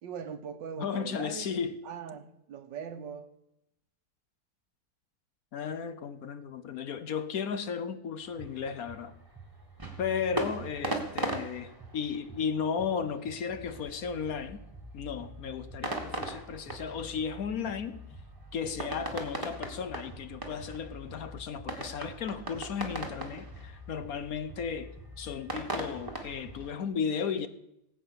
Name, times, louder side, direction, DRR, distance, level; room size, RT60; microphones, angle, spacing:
voice 1, 0.0-1.5 1.8-3.3, right 7 dB, 80° right, 1.7 m, -41 dB
voice 2, 0.8-1.8 5.5-9.1 10.0-14.6 14.9-18.0 18.5-27.5, left 6 dB, 60° left, 1.0 m, -35 dB
sound 1, 8.2-26.7, right 1 dB, 10° right, 1.5 m, -40 dB
18.0 x 8.1 x 6.7 m
omnidirectional pair, 1.9 m